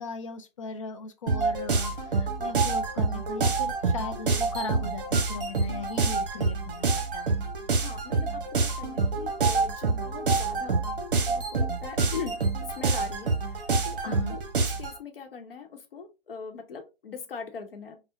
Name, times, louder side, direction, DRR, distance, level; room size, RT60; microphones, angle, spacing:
voice 1, 0.0-7.3 14.0-14.4, left 4 dB, 35° left, 0.4 m, -38 dB
sound 1, 1.3-15.0, right 4 dB, 60° right, 0.8 m, -27 dB
voice 2, 7.7-10.8 11.1-18.0, left 6 dB, 70° left, 0.9 m, -41 dB
3.7 x 2.1 x 2.4 m
hypercardioid pair, 145°, 30 cm